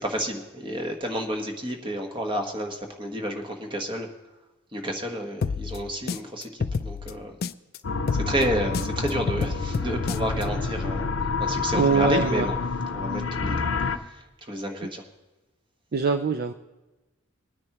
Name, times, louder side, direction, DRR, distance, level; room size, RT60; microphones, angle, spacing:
voice 1, 0.0-4.1 4.7-7.4 8.1-12.6 12.9-13.7 14.0-15.0, equal, 25° right, 3 dB, 1.3 m, -30 dB
sound 1, 5.4-7.8 8.1-10.4, left 5 dB, 50° left, 0.4 m, -30 dB
sound 2, 7.8-14.0, left 4 dB, 75° left, 0.7 m, -28 dB
voice 2, 11.7-12.5 15.9-16.5, right 5 dB, 50° right, 8 dB, 0.4 m, -23 dB
21.0 x 9.6 x 3.0 m, 1.1 s
head